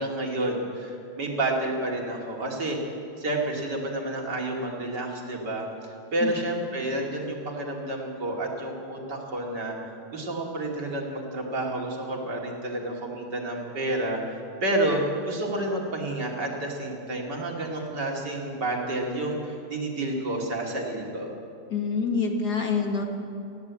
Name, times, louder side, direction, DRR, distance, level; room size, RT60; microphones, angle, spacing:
voice 1, 0.0-2.8 3.2-5.7 6.1-9.7 10.1-21.3, right 1 dB, 75° right, -1 dB, 3.5 m, -30 dB
voice 2, 21.7-23.0, left 5 dB, 65° left, 3 dB, 2.5 m, -26 dB
20.0 x 15.5 x 8.4 m, 2.6 s
omnidirectional pair, 1.9 m